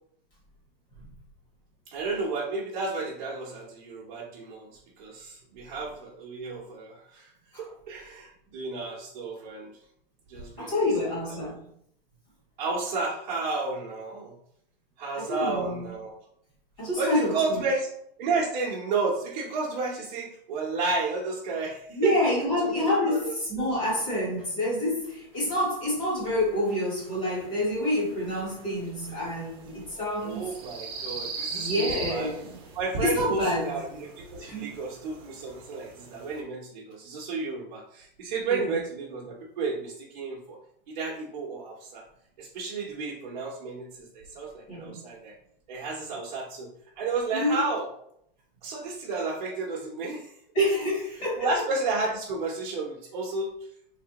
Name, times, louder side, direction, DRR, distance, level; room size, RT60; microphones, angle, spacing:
voice 1, 1.9-7.3 7.6-9.7 10.3-10.8 12.6-14.3 15.0-16.2 17.0-17.9 18.2-22.1 22.6-23.2 30.2-32.3 32.7-40.6 40.9-42.0 42.4-45.3 45.7-46.7 47.0-47.9 48.6-50.3 51.4-53.5, right 3 dB, 50° right, -4 dB, 0.8 m, -32 dB
voice 2, 10.6-11.6 15.2-16.0 16.8-17.6 21.9-30.5 31.4-32.6 33.0-33.8 34.4-34.8 38.5-38.8 44.7-45.0 47.3-47.6 50.5-51.5, left 1 dB, 30° left, -5 dB, 1.3 m, -28 dB
sound 1, 25.6-36.4, right 4 dB, 25° right, 0.4 m, -41 dB
3.3 x 3.3 x 2.8 m, 0.71 s
supercardioid pair, 170°, 30 cm